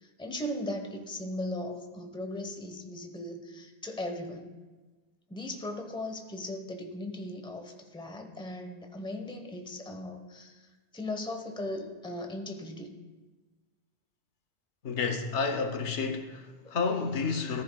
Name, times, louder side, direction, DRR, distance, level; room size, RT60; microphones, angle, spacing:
voice 1, 0.0-4.5 5.3-10.7 10.9-13.0 17.1-17.2, left 1 dB, 5° left, 4 dB, 0.9 m, -38 dB
voice 2, 14.8-17.6, left 4 dB, 80° left, 6 dB, 1.2 m, -30 dB
14.5 x 14.0 x 2.3 m, 1.3 s
omnidirectional pair, 1.2 m